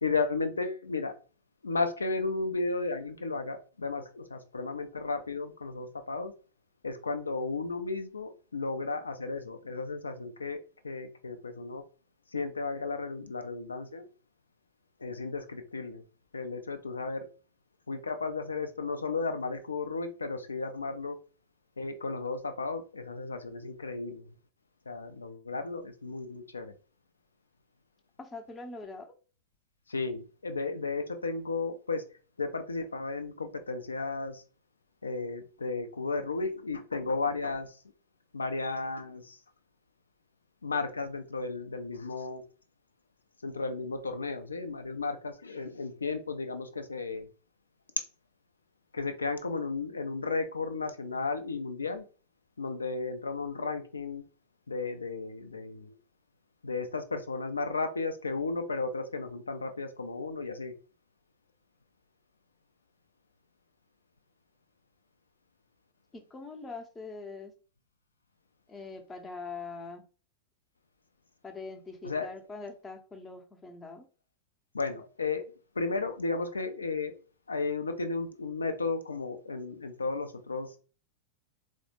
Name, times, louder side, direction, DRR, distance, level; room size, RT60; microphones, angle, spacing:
voice 1, 0.0-1.1 1.6-6.3 6.8-10.6 10.8-11.8 12.3-14.1 15.0-16.0 16.3-17.3 17.9-21.2 21.8-24.4 24.9-26.7 29.9-32.0 32.4-34.4 35.0-37.8 38.3-39.4 40.6-42.4 43.4-47.3 48.9-52.1 52.6-54.2 54.7-55.9 56.6-60.7 72.0-72.3 74.7-75.5 75.8-77.1 77.5-80.8, left 3 dB, 75° left, 8 dB, 0.4 m, -34 dB
voice 2, 28.2-29.2 66.1-67.5 68.7-70.0 71.4-74.1, left 3 dB, 20° left, 6 dB, 0.6 m, -43 dB
4.0 x 2.1 x 2.9 m, 0.37 s
figure-of-eight pair, 90°, 0 cm